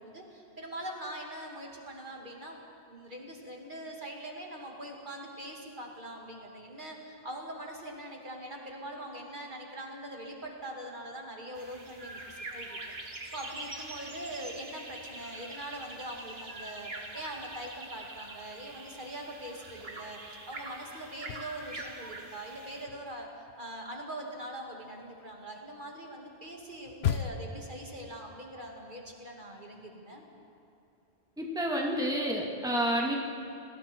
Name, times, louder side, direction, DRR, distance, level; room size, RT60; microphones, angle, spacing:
voice 1, 0.0-2.6 2.9-23.3 23.6-30.2, right 1 dB, 50° right, 0 dB, 2.6 m, -42 dB
sound 1, 11.5-22.8, right 2 dB, 70° right, 2.1 m, -44 dB
sound 2, 21.1-22.3 22.6-27.7, left 8 dB, 80° left, 1.0 m, -37 dB
voice 2, 31.4-33.2, equal, 5° right, -1 dB, 2.1 m, -29 dB
29.5 x 19.5 x 4.6 m, 2.8 s
omnidirectional pair, 1.0 m